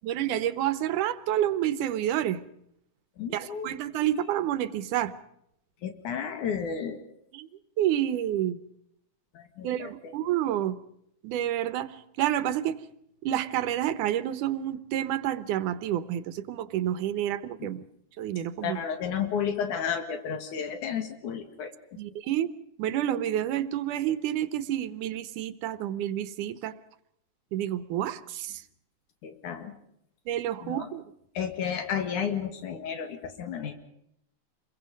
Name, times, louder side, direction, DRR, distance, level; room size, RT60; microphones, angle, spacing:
voice 1, 0.0-2.4 3.3-5.1 7.3-7.5 7.8-8.6 9.6-10.8 11.2-12.8 13.2-17.8 18.2-18.8 22.0-22.5 22.8-26.7 27.5-28.6 30.3-31.0, right 11 dB, 90° right, 14 dB, 2.5 m, -29 dB
voice 2, 3.2-3.7 5.8-7.0 9.3-10.1 17.6-17.7 18.6-21.7 29.2-29.7 30.6-30.9 31.3-33.7, left 7 dB, 80° left, 7 dB, 3.3 m, -32 dB
28.0 x 22.5 x 5.3 m, 0.75 s
omnidirectional pair, 3.5 m